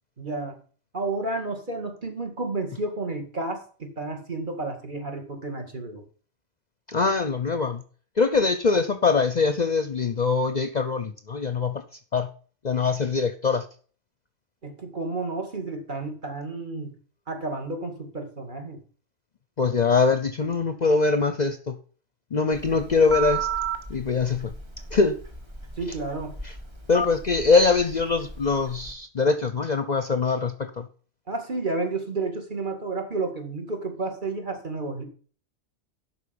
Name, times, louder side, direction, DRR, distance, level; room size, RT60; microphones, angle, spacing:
voice 1, 0.2-0.6 0.9-6.0 14.6-16.9 17.3-18.8 25.8-26.3 31.3-35.0, right 3 dB, 45° right, 4 dB, 2.3 m, -31 dB
voice 2, 6.9-7.8 8.2-11.8 12.1-12.3 12.6-13.6 19.6-21.8 22.3-23.5 23.9-24.5 24.9-25.2 26.4-26.5 26.9-30.9, left 4 dB, 45° left, 10 dB, 0.7 m, -23 dB
Telephone, 22.5-28.9, right 4 dB, 25° right, 1.3 m, -34 dB
11.5 x 4.6 x 7.0 m, 0.42 s
omnidirectional pair, 1.2 m